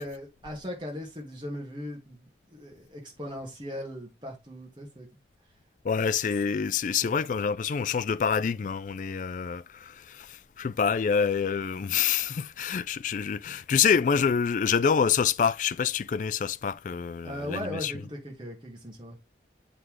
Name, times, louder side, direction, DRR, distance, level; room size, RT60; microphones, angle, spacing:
voice 1, 0.0-5.1 7.0-7.2 17.2-19.2, left 1 dB, 25° right, 2.3 m, -38 dB
voice 2, 5.8-17.9, left 6 dB, 45° left, 0.3 m, -27 dB
7.7 x 3.8 x 3.2 m
head